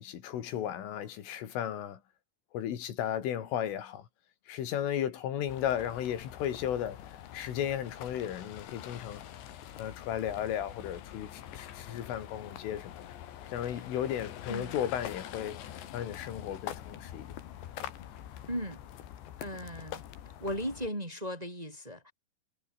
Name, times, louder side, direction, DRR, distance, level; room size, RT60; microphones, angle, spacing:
voice 1, 0.0-2.0 2.5-4.0 4.5-7.0 7.3-9.2 9.8-13.1 13.5-15.6 15.9-17.3, left 10 dB, 85° left, 5.2 m, -34 dB
sound 1, 5.5-20.9, left 11 dB, 70° left, 4.3 m, -45 dB
voice 2, 18.5-18.8 19.4-20.0 20.4-22.1, equal, 10° right, 3.4 m, -37 dB
omnidirectional pair, 5.6 m